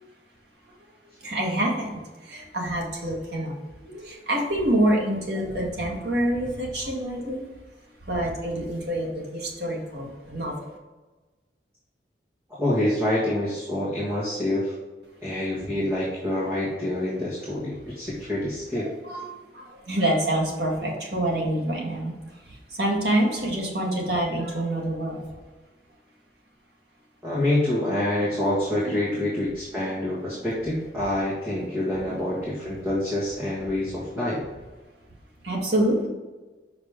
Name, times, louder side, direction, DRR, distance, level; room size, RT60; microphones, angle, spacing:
voice 1, 1.2-2.0 2.3-3.5 3.9-7.4 8.1-10.5 16.5-16.6 18.7-22.1 22.8-25.2 28.8-29.0 35.4-36.1, right 1 dB, 65° right, -2 dB, 1.6 m, -26 dB
voice 2, 12.6-14.7 15.2-18.9 27.2-34.4, left 1 dB, 15° right, -9 dB, 1.6 m, -26 dB
6.3 x 5.0 x 3.7 m, 1.3 s
head